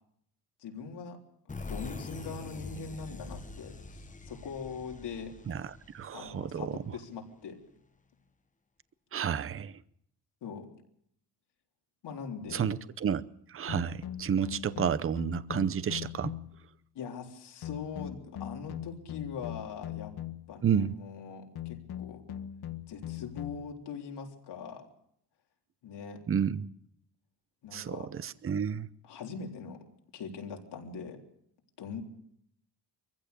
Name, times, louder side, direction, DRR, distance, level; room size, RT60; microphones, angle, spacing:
voice 1, 0.6-1.2 1.7-5.3 6.1-7.6 10.4-10.7 12.0-12.7 16.9-20.1 20.5-22.2 22.9-24.9 25.8-26.2 27.6-28.1 29.0-29.8 30.1-31.2 31.8-32.0, left 5 dB, 90° left, 3.8 m, -42 dB
sound 1, 1.5-7.0, left 3 dB, 20° left, 1.0 m, -44 dB
voice 2, 5.5-6.8 9.1-9.8 12.5-16.3 20.6-20.9 26.3-26.7 27.7-28.9, right 8 dB, 35° right, 0.7 m, -31 dB
sound 2, 12.5-12.7 13.7-16.7 17.6-20.6 21.5-23.7, left 11 dB, 70° left, 1.5 m, -41 dB
24.0 x 15.5 x 6.8 m
cardioid pair, 145°, 40 cm